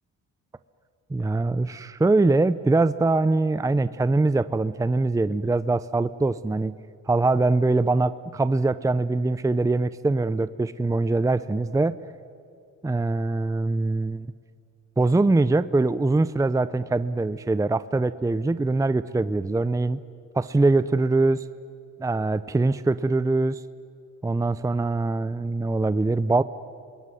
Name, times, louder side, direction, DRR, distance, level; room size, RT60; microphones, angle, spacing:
voice 1, 1.1-6.7 7.1-12.0 12.8-14.3 15.0-20.0 20.3-21.4 22.0-23.6 24.2-26.4, right 2 dB, 10° right, 15 dB, 0.6 m, -23 dB
26.0 x 21.5 x 9.9 m, 2.6 s
cardioid pair, 90°, 30 cm